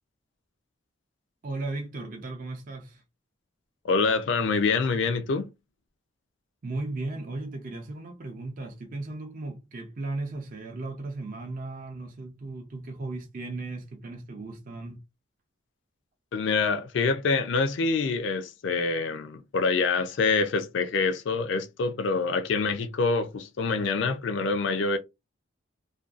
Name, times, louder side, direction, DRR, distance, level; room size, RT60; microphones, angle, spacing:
voice 1, 1.4-3.0 6.6-15.0, right 2 dB, 40° right, 0.4 m, -36 dB
voice 2, 3.8-5.5 16.3-25.0, left 4 dB, 65° left, 0.4 m, -26 dB
2.5 x 2.2 x 2.4 m
head